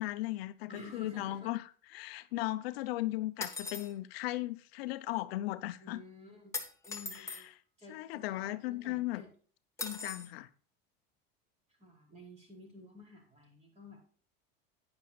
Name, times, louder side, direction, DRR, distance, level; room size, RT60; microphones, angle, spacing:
voice 1, 0.0-1.6 1.9-6.0 7.1-7.4 7.9-9.2 9.8-10.5, left 17 dB, 85° left, 0.8 m, -37 dB
voice 2, 0.7-1.5 5.8-6.6 6.8-7.5 7.8-9.3 11.8-14.0, left 2 dB, 20° right, 5.0 m, -52 dB
sound 1, 3.4-3.9 6.5-7.4 9.8-10.3, left 4 dB, 10° left, 1.3 m, -39 dB
11.5 x 9.8 x 2.4 m
supercardioid pair, 135°, 30 cm